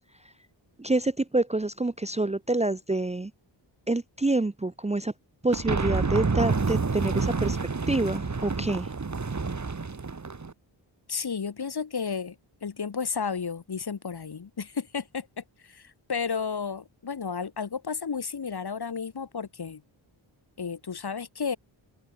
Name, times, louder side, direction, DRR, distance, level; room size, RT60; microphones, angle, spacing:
voice 1, 0.8-3.3 3.9-5.1 5.4-7.6 7.9-8.9, right 2 dB, 15° right, 0.7 m, -27 dB
sound 1, 5.5-10.5, right 4 dB, 35° right, 2.7 m, -28 dB
voice 2, 11.1-12.4 12.6-19.8 20.6-21.6, left 6 dB, 55° left, 2.3 m, -32 dB
open air
wide cardioid pair, 120°, 47 cm